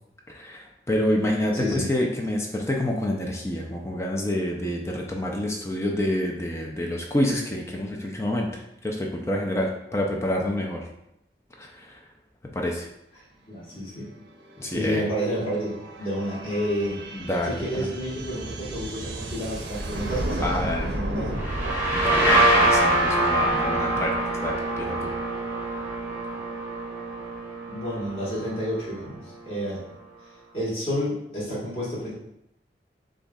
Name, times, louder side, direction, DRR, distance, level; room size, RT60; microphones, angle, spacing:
voice 1, 0.3-10.9 11.6-12.0 12.5-12.9 14.6-15.0 17.2-17.9 20.4-20.9 21.9-24.2 24.4-25.1, left 1 dB, 15° left, 0 dB, 0.4 m, -28 dB
voice 2, 1.5-1.9 13.5-14.1 14.7-17.0 17.4-21.4 27.7-29.8 30.5-32.1, equal, 35° left, -8 dB, 1.6 m, -30 dB
sound 1, 13.7-27.2, right 1 dB, 85° right, 0.6 m, -35 dB
sound 2, 21.4-28.9, right 1 dB, 10° right, 0.9 m, -24 dB
6.7 x 2.6 x 2.4 m, 0.80 s
head